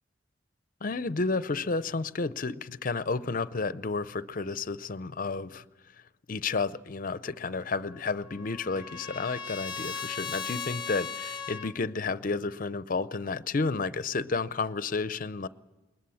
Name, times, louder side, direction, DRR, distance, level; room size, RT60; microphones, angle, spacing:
voice 1, 0.8-5.6 6.3-15.5, left 4 dB, 50° left, 15 dB, 0.6 m, -31 dB
Trumpet, 7.9-11.7, left 6 dB, 25° left, 1.4 m, -38 dB
21.0 x 20.5 x 7.1 m, 1.2 s
head